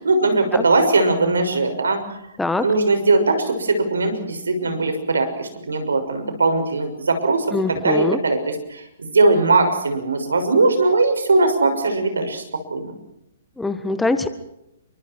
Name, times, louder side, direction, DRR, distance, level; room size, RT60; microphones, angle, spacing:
voice 1, 0.0-2.0 2.6-12.4 12.7-12.9, right 3 dB, 75° right, 7 dB, 6.4 m, -20 dB
voice 2, 7.5-8.2 13.6-14.3, left 2 dB, 5° left, 11 dB, 1.6 m, -23 dB
30.0 x 24.5 x 4.7 m, 0.84 s
figure-of-eight pair, 120°, 0 cm